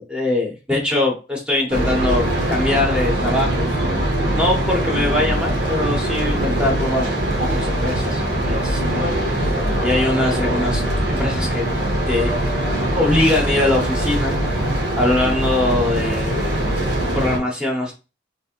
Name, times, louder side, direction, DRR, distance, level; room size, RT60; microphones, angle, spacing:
voice 1, 0.0-3.7 4.3-7.1 7.3-11.7 12.1-12.3 13.0-14.4 14.9-16.5 17.1-17.9, left 2 dB, 5° right, 0 dB, 0.9 m, -22 dB
sound 1, 1.7-17.4, right 1 dB, 75° right, 1.4 m, -22 dB
3.4 x 2.9 x 2.9 m, 0.30 s
head